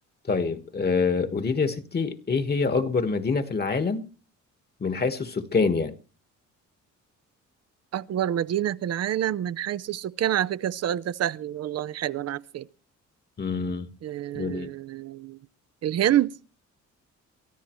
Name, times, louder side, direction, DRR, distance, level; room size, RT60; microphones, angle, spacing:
voice 1, 0.3-4.0 4.8-5.9 13.4-13.9 14.3-14.7, left 4 dB, 30° left, 1.4 m, -26 dB
voice 2, 7.9-12.7 14.0-15.4 15.8-16.3, right 11 dB, 55° right, 0.6 m, -27 dB
23.5 x 13.5 x 3.1 m
cardioid pair, 90°, 30 cm